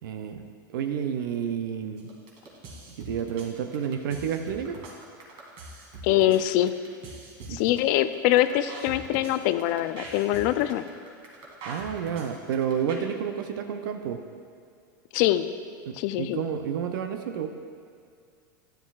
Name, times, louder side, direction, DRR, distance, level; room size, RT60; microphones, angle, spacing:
voice 1, 0.0-0.4 0.7-2.1 2.9-4.8 7.5-7.6 11.7-14.2 15.9-17.5, right 8 dB, 75° right, 6 dB, 0.6 m, -30 dB
sound 1, 2.0-13.0, right 2 dB, 50° right, 2.3 m, -43 dB
voice 2, 6.0-6.7 7.5-10.8 15.1-15.5 15.9-16.4, left 13 dB, 55° left, 12 dB, 0.4 m, -23 dB
11.5 x 10.5 x 2.4 m, 2.3 s
hypercardioid pair, 110°, 11 cm